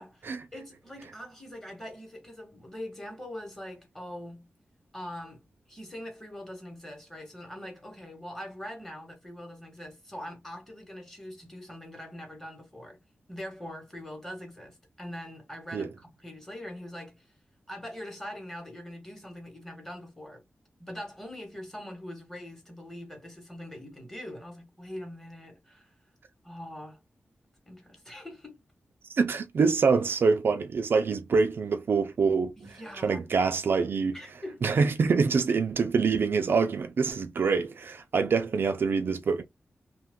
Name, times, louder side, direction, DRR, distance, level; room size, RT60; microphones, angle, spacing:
voice 1, 0.0-4.5 4.9-5.4 5.7-13.0 13.3-17.3 17.7-20.4 20.8-25.9 26.4-27.0 27.7-28.6 32.6-33.2 34.1-34.6, left 1 dB, 10° left, 1.0 m, -42 dB
voice 2, 29.1-32.5 33.0-34.2 34.6-39.4, right 5 dB, 60° right, 0.3 m, -25 dB
2.8 x 2.3 x 3.4 m
wide cardioid pair, 180°, 4 cm